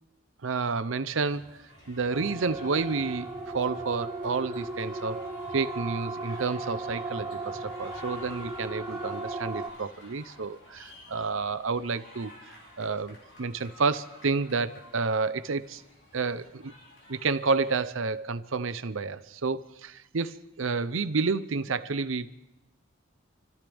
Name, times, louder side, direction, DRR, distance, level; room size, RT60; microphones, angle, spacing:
voice 1, 0.4-1.6 1.9-12.3 12.8-15.8 16.1-16.7 17.1-22.3, right 4 dB, 75° right, 13 dB, 0.7 m, -30 dB
sound 1, 1.2-17.9, left 1 dB, 60° left, 3.6 m, -51 dB
Siren, 2.1-9.7, right 2 dB, 5° right, 2.3 m, -36 dB
28.5 x 13.0 x 3.5 m, 0.92 s
head